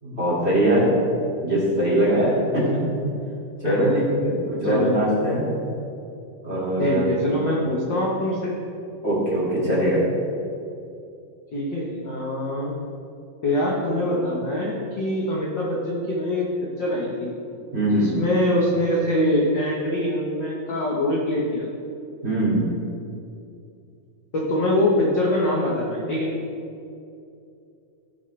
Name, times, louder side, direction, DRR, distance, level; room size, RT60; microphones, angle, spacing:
voice 1, 0.0-0.9 1.4-2.6 3.6-5.4 6.4-7.0 7.4-7.5 9.0-10.0 17.7-18.1 22.2-22.6, right 1 dB, 20° right, -6 dB, 2.5 m, -22 dB
voice 2, 3.6-4.1 4.6-5.0 6.8-8.5 11.5-12.7 13.4-16.5 16.8-17.3 17.9-21.7 24.3-26.3, left 1 dB, 55° left, -4 dB, 1.3 m, -24 dB
17.5 x 7.3 x 3.4 m, 2.6 s
omnidirectional pair, 3.8 m